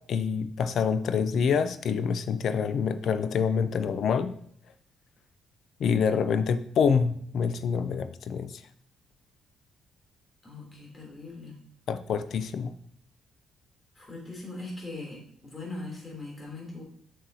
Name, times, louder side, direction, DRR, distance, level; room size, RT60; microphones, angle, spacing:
voice 1, 0.1-4.3 5.8-8.6 11.9-12.7, left 6 dB, 65° left, 12 dB, 0.5 m, -26 dB
voice 2, 10.4-11.5 13.9-16.8, left 2 dB, 25° left, -2 dB, 3.2 m, -40 dB
7.5 x 6.6 x 2.8 m, 0.64 s
cardioid pair, 90°, 0 cm